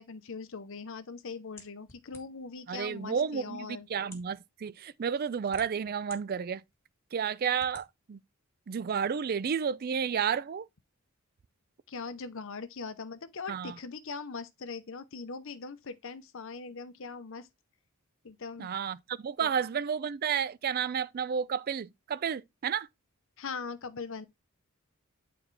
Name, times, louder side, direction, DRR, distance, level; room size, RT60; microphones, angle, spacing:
voice 1, 0.0-3.9 11.9-17.5 18.2-18.7 19.4-19.5 23.4-24.3, left 4 dB, 60° left, 0.7 m, -41 dB
sound 1, 1.6-2.5 3.3-3.4 4.0-4.3 5.1-6.2 6.7-6.8 7.6-7.9, left 2 dB, 10° left, 1.5 m, -51 dB
voice 2, 2.7-6.6 7.1-8.2 8.7-10.7 13.5-13.8 18.6-22.9, right 7 dB, 45° right, 0.4 m, -31 dB
8.9 x 4.4 x 3.2 m
head